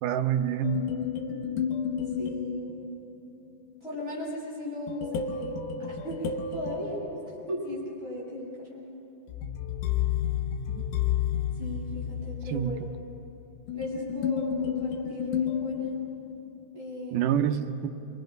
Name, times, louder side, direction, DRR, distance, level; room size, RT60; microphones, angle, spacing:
voice 1, 0.0-0.8 10.8-10.9 12.5-12.9 17.1-17.9, right 9 dB, 85° right, 7 dB, 2.5 m, -27 dB
sound 1, 0.6-3.2 4.9-7.9 9.3-16.6, left 8 dB, 85° left, 2.5 m, -32 dB
voice 2, 2.2-2.7 3.8-7.2 7.5-8.9 11.5-12.8 13.7-16.0 16.7-17.2, left 1 dB, 15° left, -8 dB, 7.2 m, -37 dB
28.5 x 25.0 x 5.3 m, 2.9 s
omnidirectional pair, 3.6 m